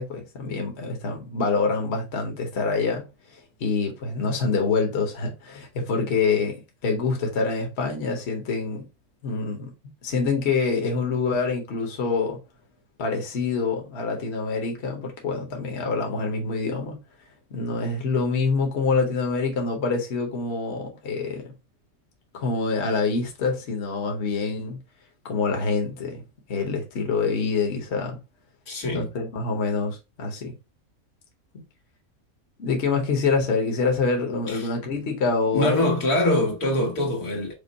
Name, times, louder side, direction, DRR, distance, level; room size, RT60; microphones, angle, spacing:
voice 1, 0.0-3.1 3.6-8.9 9.2-9.7 10.0-12.4 13.0-17.0 17.5-21.5 22.3-24.8 25.2-26.2 26.5-28.2 28.9-30.5 32.6-35.9, left 4 dB, 50° left, 1.2 m, -26 dB
voice 2, 28.7-29.1 34.5-34.6 35.5-37.5, left 1 dB, 85° left, 2.0 m, -24 dB
5.2 x 2.0 x 4.0 m
omnidirectional pair, 1.6 m